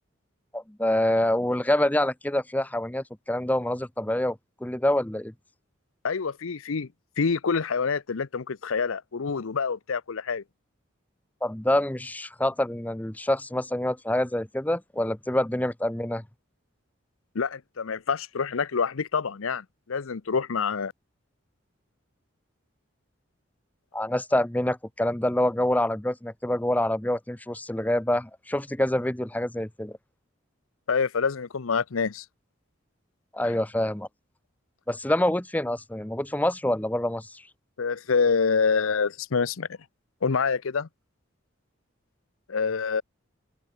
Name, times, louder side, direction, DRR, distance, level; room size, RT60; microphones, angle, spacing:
voice 1, 0.5-5.3 11.4-16.2 23.9-29.9 33.3-34.1 34.9-37.4, left 1 dB, 10° left, 0.6 m, -26 dB
voice 2, 6.0-6.9 7.2-10.4 17.3-20.9 30.9-32.2 37.8-39.7 40.2-40.9 42.5-43.0, left 5 dB, 85° left, 0.7 m, -26 dB
open air
head